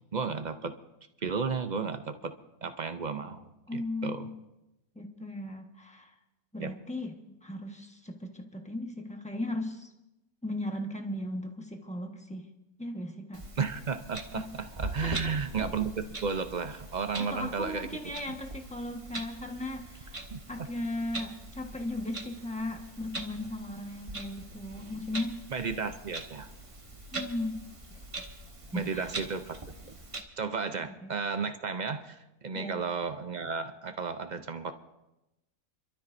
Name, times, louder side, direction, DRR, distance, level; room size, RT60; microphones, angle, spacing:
voice 1, 0.1-0.7 1.2-2.3 2.6-4.3 6.6-6.7 13.6-17.9 20.3-20.4 25.5-26.5 28.7-29.6 30.4-34.7, right 5 dB, 50° right, 8 dB, 0.5 m, -33 dB
voice 2, 3.7-4.4 4.9-6.1 6.5-9.9 10.4-12.5 12.8-13.4 14.3-14.5 15.0-15.4 17.2-20.2 20.5-25.4 27.1-27.6 27.9-28.2 28.7-29.3 30.7-31.1 32.5-32.8, left 1 dB, 5° left, 3 dB, 1.2 m, -37 dB
Clock, 13.3-30.2, right 2 dB, 25° right, 1.2 m, -42 dB
29.0 x 12.5 x 2.6 m, 0.94 s
omnidirectional pair, 1.6 m